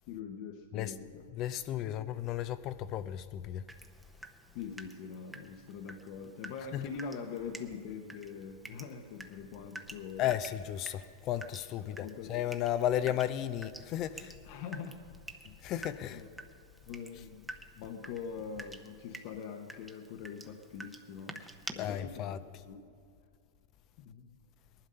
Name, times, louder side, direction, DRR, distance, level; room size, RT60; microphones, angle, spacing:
voice 1, 0.1-1.2 1.8-1.9 4.5-10.2 11.9-12.3 14.4-15.0 15.4-15.6 16.1-16.3 16.9-17.5 17.8-22.3 22.6-22.8 24.0-24.3, left 6 dB, 55° left, 1.0 m, -43 dB
voice 2, 1.3-3.6 6.7-6.9 10.2-14.4 15.6-16.2 21.8-22.4, left 11 dB, 40° left, 0.5 m, -34 dB
Water tap faucet / Drip, 3.7-21.7, right 2 dB, 5° right, 0.8 m, -50 dB
18.5 x 11.5 x 5.5 m
hypercardioid pair, 125°, 0 cm